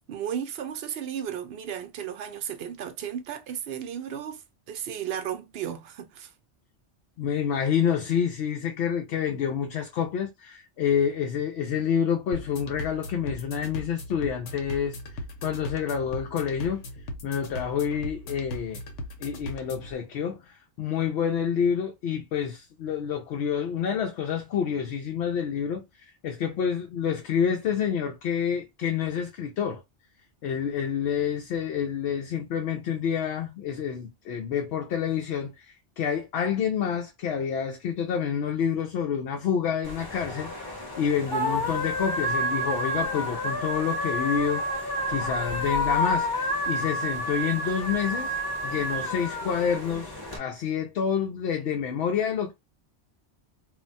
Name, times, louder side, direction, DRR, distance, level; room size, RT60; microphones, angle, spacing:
voice 1, 0.1-6.3, right 9 dB, 65° right, 0.7 m, -34 dB
voice 2, 7.2-15.0 15.4-16.8 17.2-18.8 19.2-29.8 30.4-48.3 48.6-52.5, left 7 dB, 70° left, 0.8 m, -28 dB
sound 1, 12.3-19.9, left 1 dB, 90° left, 1.0 m, -38 dB
sound 2, 39.8-50.4, equal, 20° left, 1.0 m, -29 dB
2.4 x 2.2 x 3.9 m
omnidirectional pair, 1.2 m